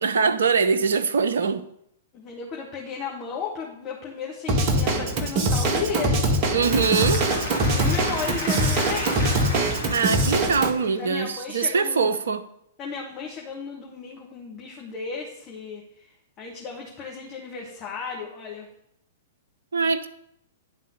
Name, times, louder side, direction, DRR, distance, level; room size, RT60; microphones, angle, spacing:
voice 1, 0.0-1.6 6.5-7.3 9.9-12.4 19.7-20.1, right 5 dB, 60° right, 0.6 m, -23 dB
voice 2, 2.1-6.8 7.5-9.4 10.9-12.1 12.8-16.1 16.4-18.7, left 5 dB, 25° left, 1.3 m, -35 dB
Drum kit / Drum, 4.5-10.7, right 1 dB, 35° right, 1.0 m, -23 dB
Applause / Crowd, 6.4-11.3, equal, 45° left, 2.4 m, -34 dB
10.5 x 3.7 x 6.3 m
figure-of-eight pair, 105°, 0 cm